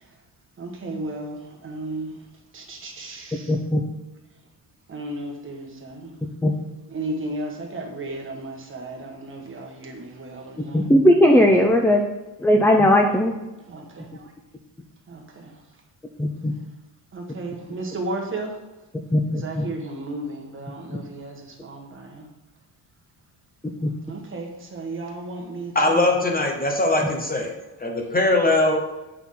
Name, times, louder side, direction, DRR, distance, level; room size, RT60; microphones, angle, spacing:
voice 1, 0.6-2.1 2.5-3.5 4.9-6.1 6.9-10.9 13.7-14.3 15.1-15.5 17.1-18.6 19.4-22.2 24.1-26.2, right 2 dB, 30° right, 1 dB, 1.4 m, -34 dB
voice 2, 3.5-3.8 6.4-6.5 10.7-12.0 12.4-13.3 16.2-16.5 19.1-19.6 23.8-23.9, left 1 dB, 5° left, 3 dB, 0.3 m, -17 dB
voice 3, 25.7-27.5 27.8-28.8, left 2 dB, 20° left, 2 dB, 0.9 m, -21 dB
8.2 x 5.8 x 3.7 m, 1.1 s
cardioid pair, 145°, 42 cm